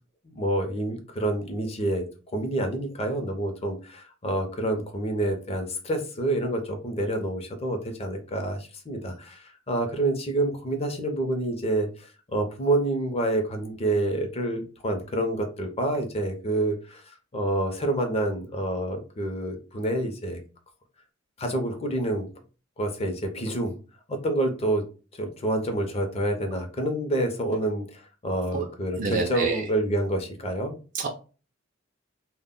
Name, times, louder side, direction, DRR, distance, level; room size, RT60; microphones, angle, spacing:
voice 1, 0.2-2.0 2.3-17.0 17.3-20.4 21.4-22.3 22.8-23.8 24.1-24.8 25.2-30.7, right 1 dB, 30° left, 4 dB, 0.5 m, -28 dB
voice 2, 29.0-29.6 30.9-31.1, right 5 dB, 40° right, 1 dB, 0.3 m, -27 dB
2.1 x 2.0 x 3.5 m, 0.36 s
head